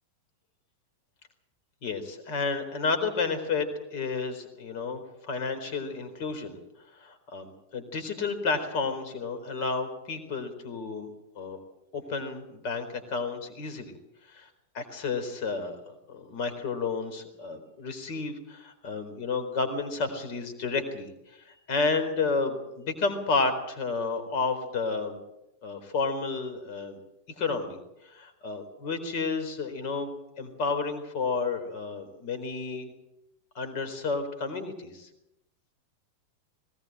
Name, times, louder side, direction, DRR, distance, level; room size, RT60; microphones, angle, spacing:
voice 1, 1.8-6.6 6.9-11.1 11.4-11.6 11.9-13.9 14.3-14.5 14.7-25.2 25.6-27.0 27.4-27.8 28.0-30.1 30.4-32.9 33.5-35.1, left 4 dB, 45° left, 9 dB, 4.1 m, -31 dB
20.5 x 19.5 x 7.9 m, 0.89 s
figure-of-eight pair, 90°, 0 cm